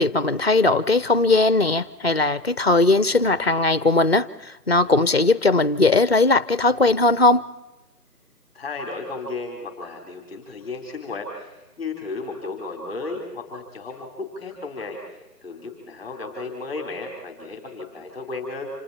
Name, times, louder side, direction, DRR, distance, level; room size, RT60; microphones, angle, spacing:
voice 1, 0.0-7.4, left 2 dB, 40° left, 17 dB, 0.8 m, -19 dB
voice 2, 8.5-15.0 15.4-18.7, left 3 dB, 10° left, 1 dB, 4.0 m, -34 dB
29.5 x 27.5 x 4.4 m, 1.0 s
figure-of-eight pair, 165°, 48 cm